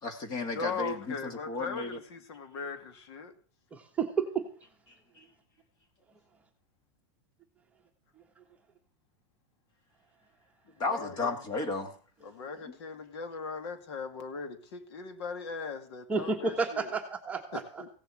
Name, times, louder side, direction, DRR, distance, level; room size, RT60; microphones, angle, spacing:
voice 1, 0.0-2.0 10.8-11.9, left 3 dB, 25° left, 2.3 m, -33 dB
voice 2, 0.5-3.3 10.8-11.4 12.2-17.0 17.5-17.9, left 5 dB, 60° left, 2.3 m, -39 dB
voice 3, 3.7-4.5 16.1-17.6, right 5 dB, 10° right, 1.4 m, -31 dB
16.0 x 7.6 x 7.8 m
supercardioid pair, 170°, 15 cm